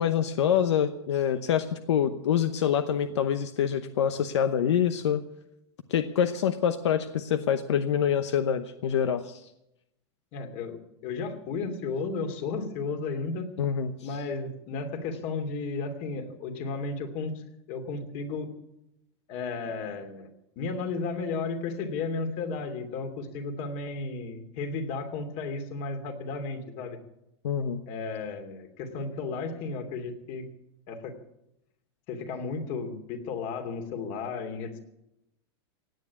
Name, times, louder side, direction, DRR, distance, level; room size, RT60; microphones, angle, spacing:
voice 1, 0.0-5.2 5.9-9.4 13.6-13.9 27.4-27.8, left 9 dB, 90° left, 10 dB, 0.9 m, -26 dB
voice 2, 10.3-13.5 14.0-18.5 19.3-27.0 27.9-30.5 30.9-31.1 32.1-34.8, left 4 dB, 50° left, 6 dB, 2.8 m, -34 dB
17.0 x 9.1 x 8.3 m, 0.85 s
supercardioid pair, 125°, 14 cm